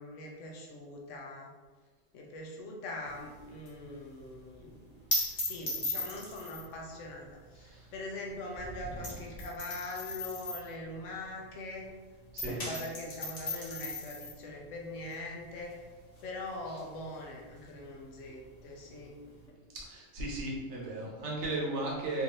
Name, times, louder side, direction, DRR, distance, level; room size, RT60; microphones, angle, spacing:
voice 1, 0.0-1.5 2.1-5.0 5.3-11.9 12.4-15.8 16.2-19.2 21.0-21.3, left 2 dB, 75° left, 0 dB, 1.0 m, -42 dB
sound 1, 3.1-11.9 12.2-19.5, left 2 dB, 35° left, 0.9 m, -39 dB
voice 2, 19.9-22.2, right 2 dB, 65° right, -3 dB, 1.1 m, -35 dB
3.5 x 2.6 x 2.9 m, 1.4 s
omnidirectional pair, 1.3 m